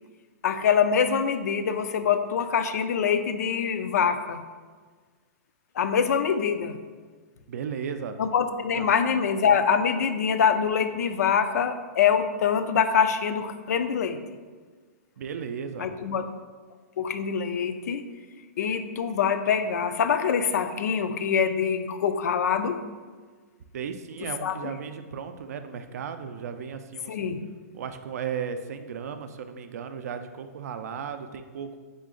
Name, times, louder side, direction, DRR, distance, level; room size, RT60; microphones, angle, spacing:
voice 1, 0.4-4.4 5.8-6.8 8.2-14.2 15.8-16.3 17.0-18.1 18.6-22.8 24.4-24.7 27.1-27.4, left 7 dB, 80° left, 10 dB, 0.3 m, -24 dB
voice 2, 7.5-8.2 8.8-8.9 15.2-15.9 23.7-27.2 27.7-31.8, right 7 dB, 70° right, 9 dB, 0.4 m, -35 dB
3.7 x 3.2 x 3.8 m, 1.5 s
hypercardioid pair, 150°, 9 cm